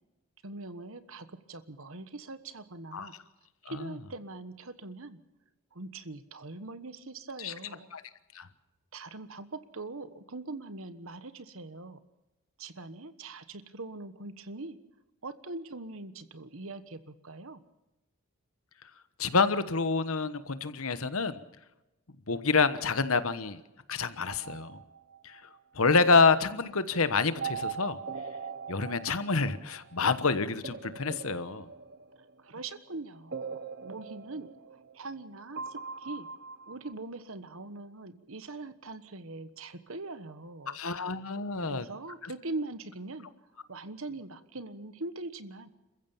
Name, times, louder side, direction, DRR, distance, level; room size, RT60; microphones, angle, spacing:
voice 1, 0.4-3.2 3.7-5.2 5.7-7.9 8.9-12.0 12.6-14.8 15.2-17.6 32.4-36.3 36.7-41.0 41.6-43.3 43.7-45.7, right 2 dB, 70° right, 12 dB, 1.3 m, -42 dB
voice 2, 19.2-21.4 22.3-23.6 23.9-24.8 25.2-25.4 25.7-28.0 28.7-31.7 40.7-41.8, left 4 dB, 75° left, 12 dB, 1.2 m, -27 dB
sound 1, 24.3-25.6 27.4-30.0 30.6-32.6 33.3-35.2 35.6-36.9, right 5 dB, 45° right, 0.8 m, -41 dB
27.5 x 15.0 x 7.1 m, 1.0 s
head